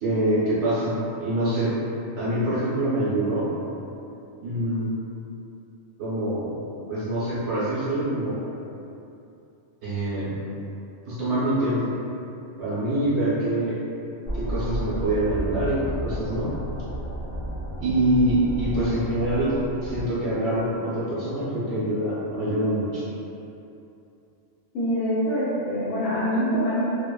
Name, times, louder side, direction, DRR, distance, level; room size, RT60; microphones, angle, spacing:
voice 1, 0.0-1.7 2.2-3.5 4.4-4.9 6.0-6.6 6.9-8.4 9.8-10.3 11.1-11.9 12.6-13.8 14.3-16.5 17.8-23.0, right 1 dB, 65° right, -12 dB, 1.0 m, -25 dB
sound 1, 14.3-20.0, right 1 dB, 40° right, 0.6 m, -32 dB
voice 2, 24.7-26.8, equal, 70° left, -15 dB, 1.1 m, -24 dB
2.7 x 2.0 x 2.2 m, 2.8 s
omnidirectional pair, 1.3 m